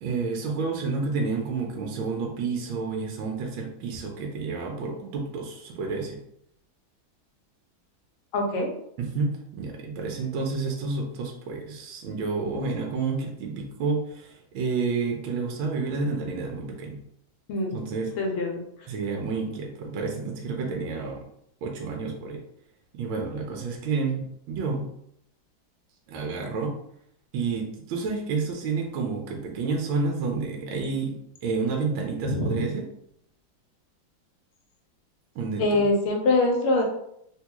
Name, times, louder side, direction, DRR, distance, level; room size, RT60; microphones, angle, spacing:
voice 1, 0.0-6.2 9.0-17.0 17.7-18.1 18.9-21.2 21.6-22.4 22.9-24.8 26.1-26.7 27.3-32.9 35.3-35.9, right 4 dB, 80° right, 1 dB, 1.4 m, -30 dB
voice 2, 8.3-8.7 17.5-17.7 18.2-18.6 32.2-32.7 35.6-36.8, left 2 dB, 90° left, 1 dB, 1.6 m, -24 dB
3.8 x 2.3 x 2.9 m, 0.73 s
omnidirectional pair, 2.2 m